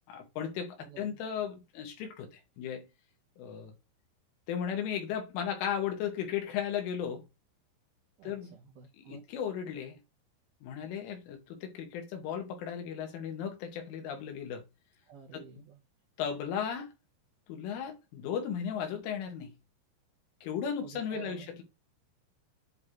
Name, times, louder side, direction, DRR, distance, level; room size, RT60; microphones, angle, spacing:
voice 1, 0.1-2.9 3.4-3.7 4.5-7.2 8.2-8.5 8.9-10.0 10.6-14.6 15.3-15.4 16.2-16.9 17.5-19.5 20.4-21.6, left 8 dB, 75° left, 4.0 m, -36 dB
voice 2, 8.2-9.2 15.1-15.8 20.8-21.5, right 8 dB, 80° right, 2.1 m, -50 dB
10.5 x 3.5 x 3.1 m
omnidirectional pair, 5.9 m